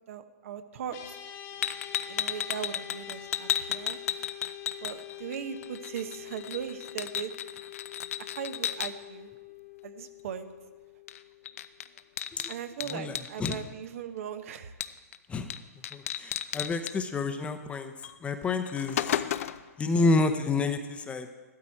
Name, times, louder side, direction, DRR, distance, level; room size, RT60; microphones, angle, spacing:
voice 1, 0.1-1.2 2.1-4.0 4.8-7.3 8.3-9.3 9.8-10.5 12.5-14.7, right 8 dB, 55° right, 9 dB, 1.0 m, -38 dB
sound 1, 0.9-12.4, left 13 dB, 30° left, 1.3 m, -46 dB
sound 2, 1.6-5.4 5.6-8.9 11.1-11.2 11.5-13.6 14.8-15.2 15.5-15.6 15.8-16.9 18.0-18.1 18.5-19.7, left 10 dB, 60° left, 0.6 m, -33 dB
voice 2, 12.9-13.6 15.3-15.5 15.9-17.9 18.2-19.0 19.8-21.3, left 3 dB, 15° left, 8 dB, 0.8 m, -29 dB
14.5 x 12.5 x 4.5 m, 1.2 s
hypercardioid pair, 130°, 9 cm